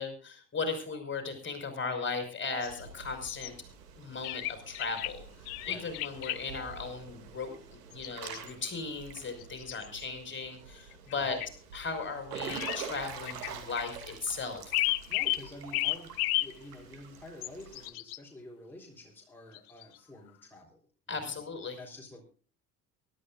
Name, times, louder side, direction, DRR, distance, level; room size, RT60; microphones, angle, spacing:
voice 1, 0.0-3.5 4.0-11.4 11.7-14.9 21.1-21.8, left 4 dB, 25° left, 6 dB, 5.0 m, -37 dB
sound 1, 2.6-2.8 3.3-3.5 4.2-5.1 5.5-6.4 7.9-8.8 9.4-10.0 10.9-11.1 11.4-11.5 12.5-12.8 13.3-13.8 14.7-15.4 15.7-16.5 17.4-18.2 19.5-20.0, left 18 dB, 65° left, 0.8 m, -32 dB
Water / Splash splatter / Drip, 2.6-17.9, right 6 dB, 75° right, 2.5 m, -46 dB
voice 2, 11.1-11.5 15.1-16.1 16.4-20.8 21.1-21.3 21.8-22.2, left 1 dB, 5° left, -1 dB, 3.9 m, -49 dB
23.0 x 12.5 x 2.5 m, 0.41 s
figure-of-eight pair, 60°, 47 cm